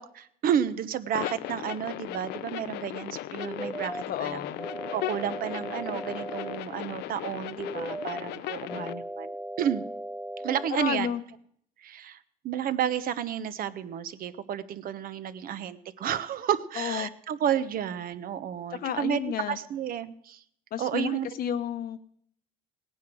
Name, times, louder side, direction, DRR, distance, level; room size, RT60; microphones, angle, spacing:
voice 1, 0.0-4.4 4.9-9.8 10.4-11.1 11.8-12.2 12.4-19.2 19.5-20.4 20.8-21.3, right 9 dB, 60° right, 13 dB, 0.9 m, -31 dB
sound 1, 1.1-8.9, left 15 dB, 80° left, 0.6 m, -37 dB
sound 2, 3.4-4.0 4.6-6.6 7.6-8.2 8.7-10.7, right 1 dB, ahead, 0.7 m, -37 dB
voice 2, 4.1-4.7 8.7-9.0 10.7-11.2 16.8-17.1 18.7-19.6 20.7-22.0, left 9 dB, 60° left, 9 dB, 0.9 m, -32 dB
17.5 x 9.3 x 6.2 m, 0.65 s
cardioid pair, 110°, 17 cm